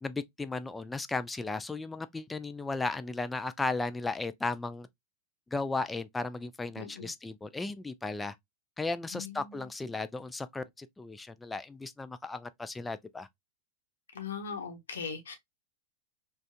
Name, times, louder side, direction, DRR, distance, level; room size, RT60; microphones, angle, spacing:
voice 1, 0.0-4.9 5.5-8.4 8.8-13.3, left 3 dB, 10° left, 0.3 m, -35 dB
voice 2, 6.8-7.1 9.1-9.7 14.1-15.3, left 6 dB, 65° left, 0.9 m, -39 dB
4.9 x 2.4 x 2.2 m
figure-of-eight pair, 90°, 0 cm